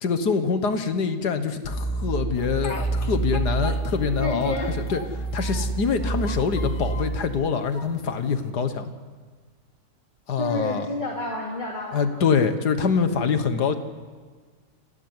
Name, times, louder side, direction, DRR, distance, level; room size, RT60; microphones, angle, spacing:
voice 1, 0.0-4.5 4.9-5.0 5.3-8.9 10.3-10.9 11.9-13.7, left 5 dB, 65° left, 9 dB, 2.0 m, -25 dB
sound 1, 1.6-7.2, right 3 dB, ahead, 2.3 m, -28 dB
Speech, 2.4-4.1 4.4-5.8 6.2-7.2 7.7-8.5, left 4 dB, 40° left, 1.7 m, -38 dB
voice 2, 4.2-4.7 6.0-6.4 10.4-12.2, left 2 dB, 25° left, -1 dB, 2.7 m, -30 dB
29.5 x 12.0 x 9.7 m, 1.5 s
omnidirectional pair, 1.9 m